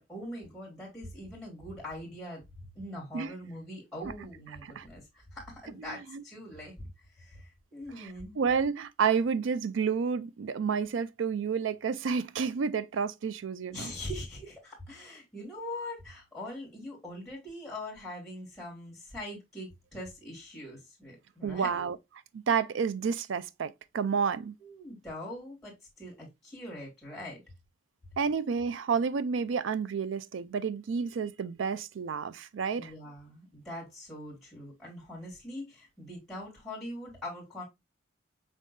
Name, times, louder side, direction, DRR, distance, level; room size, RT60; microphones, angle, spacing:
voice 1, 0.0-2.4 2.8-8.4 13.7-21.9 24.6-27.4 32.8-37.6, left 1 dB, ahead, 2.0 m, -42 dB
voice 2, 5.8-6.2 8.0-8.1 8.4-13.9 21.4-22.0 22.3-24.5 28.2-32.9, right 6 dB, 80° right, 0.4 m, -30 dB
5.3 x 3.7 x 2.5 m
head